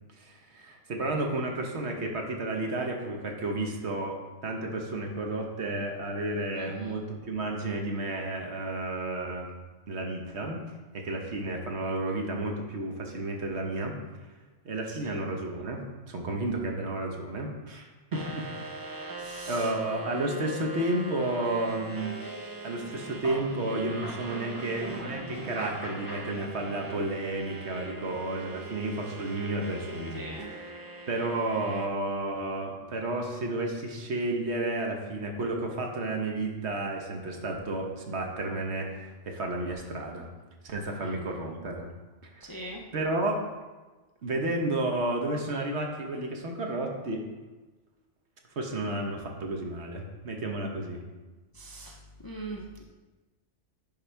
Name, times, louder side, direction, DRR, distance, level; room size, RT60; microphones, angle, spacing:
voice 1, 0.2-4.2 4.4-9.5 9.9-10.6 10.9-13.9 14.6-18.5 19.5-22.2 22.6-30.7 31.1-40.3 40.6-41.9 42.3-42.6 42.9-43.4 44.2-47.2 48.6-51.0, right 2 dB, 65° right, 2 dB, 1.3 m, -32 dB
voice 2, 6.6-6.9 14.9-15.2 19.2-19.7 30.1-30.5 41.0-41.2 42.4-42.8 51.5-52.0 52.2-52.8, right 2 dB, 25° left, -1 dB, 0.5 m, -41 dB
sound 1, 18.1-31.9, right 2 dB, 30° right, 0.4 m, -41 dB
sound 2, 22.7-27.3, right 1 dB, 10° right, 2.6 m, -44 dB
10.5 x 4.4 x 3.4 m, 1.2 s
omnidirectional pair, 1.2 m